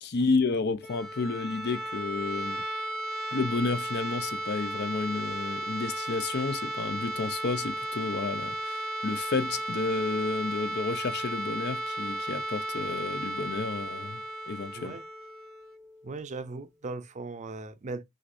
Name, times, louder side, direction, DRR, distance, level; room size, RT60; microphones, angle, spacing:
voice 1, 0.0-2.6 3.3-14.9, left 4 dB, 50° left, 0.5 m, -31 dB
sound 1, 0.7-16.5, right 1 dB, ahead, 0.9 m, -35 dB
voice 2, 14.7-15.0 16.0-18.0, right 3 dB, 35° right, 0.5 m, -38 dB
6.3 x 2.5 x 2.6 m
head